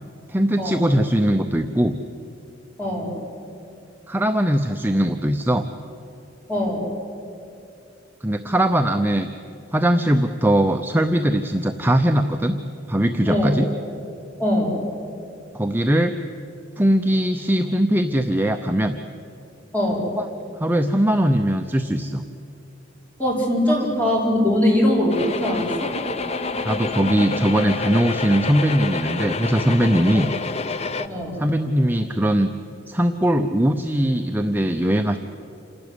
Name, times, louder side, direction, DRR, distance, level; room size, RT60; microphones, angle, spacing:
voice 1, 0.3-2.0 4.1-5.6 8.2-9.3 9.7-12.6 12.9-13.7 15.5-16.1 16.8-19.0 20.2-20.3 20.6-22.2 26.6-30.3 31.4-32.5 32.9-35.2, right 1 dB, 10° right, 5 dB, 0.6 m, -20 dB
voice 2, 2.8-3.2 6.5-6.9 13.3-13.6 14.4-14.8 19.7-20.1 23.2-25.9 30.1-30.3 31.0-31.4, left 1 dB, 10° left, -3 dB, 4.6 m, -22 dB
sound 1, 25.1-31.1, left 3 dB, 35° left, 0.6 m, -28 dB
27.5 x 12.0 x 9.7 m, 2.6 s
head